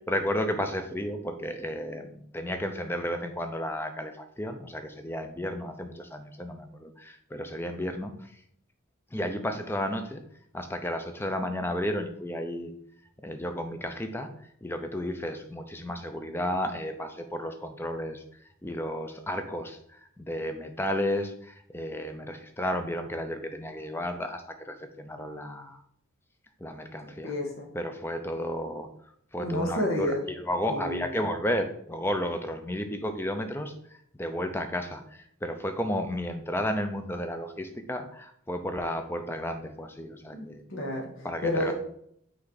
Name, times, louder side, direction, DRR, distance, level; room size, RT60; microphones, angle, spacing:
voice 1, 0.1-8.4 9.1-10.2 10.5-12.7 13.2-14.3 14.6-18.2 18.6-25.8 26.6-27.3 27.7-28.9 29.3-33.7 34.1-40.6 41.2-41.7, left 1 dB, 10° left, 6 dB, 0.5 m, -33 dB
voice 2, 27.0-27.7 29.4-30.2 30.7-31.1 40.3-41.7, left 1 dB, 70° left, 0 dB, 1.7 m, -31 dB
6.2 x 4.6 x 4.0 m, 0.68 s
head